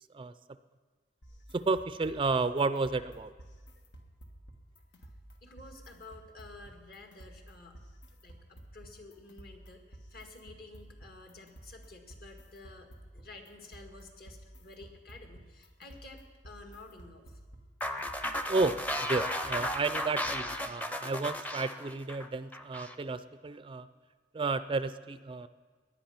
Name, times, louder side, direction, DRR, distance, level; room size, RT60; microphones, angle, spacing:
sound 1, 1.2-20.8, right 1 dB, 90° left, 1.6 m, -53 dB
voice 1, 1.5-3.3 18.5-23.9 24.3-25.5, right 3 dB, 30° right, 13 dB, 0.4 m, -32 dB
voice 2, 5.4-7.8 8.2-12.9 13.1-17.4, left 2 dB, 55° left, 3 dB, 1.9 m, -51 dB
sound 2, 17.8-23.0, left 1 dB, 10° left, 0.6 m, -35 dB
18.5 x 11.0 x 5.8 m, 1.4 s
head